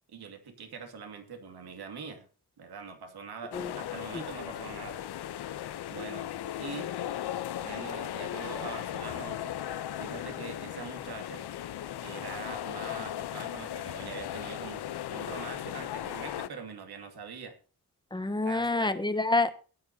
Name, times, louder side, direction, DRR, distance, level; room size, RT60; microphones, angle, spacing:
voice 1, 0.1-2.3 2.6-5.0 5.9-6.3 6.6-6.9 7.6-9.6 10.0-11.4 12.0-17.6 18.4-18.9, right 5 dB, 75° right, 6 dB, 2.5 m, -43 dB
sound 1, 3.5-16.5, left 11 dB, 85° left, 0.8 m, -37 dB
voice 2, 18.1-19.5, left 2 dB, 10° left, 9 dB, 1.1 m, -27 dB
17.5 x 9.5 x 2.8 m, 0.37 s
cardioid pair, 90°, 38 cm